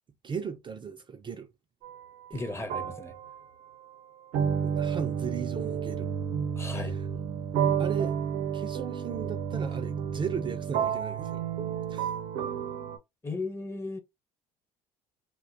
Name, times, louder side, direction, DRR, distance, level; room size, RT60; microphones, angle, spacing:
voice 1, 0.2-1.5 2.3-2.6 4.6-6.1 6.8-7.0 7.8-8.2 8.5-11.5 11.9-12.1, right 6 dB, 30° right, 0.4 m, -37 dB
sound 1, 1.8-2.1 2.7-13.0, right 7 dB, 75° right, 0.6 m, -31 dB
voice 2, 2.3-3.1 6.6-7.0 13.2-14.0, left 2 dB, 15° left, 0.6 m, -35 dB
2.5 x 2.1 x 2.4 m
hypercardioid pair, 70°, 16 cm